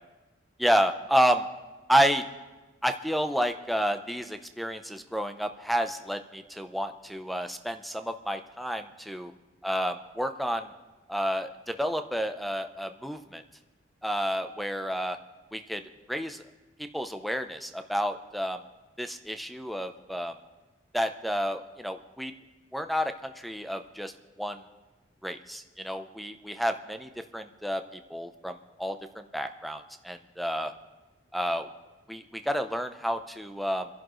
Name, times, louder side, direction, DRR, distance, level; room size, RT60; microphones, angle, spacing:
voice 1, 0.6-1.5 1.9-2.3 2.8-9.3 9.6-10.7 11.1-13.4 14.0-15.2 15.5-15.8 16.1-16.4 16.9-18.6 19.0-20.3 20.9-22.3 22.7-24.6 25.2-30.7 31.3-31.7 32.1-33.9, equal, ahead, 7 dB, 0.7 m, -30 dB
28.5 x 11.0 x 3.2 m, 1.2 s
head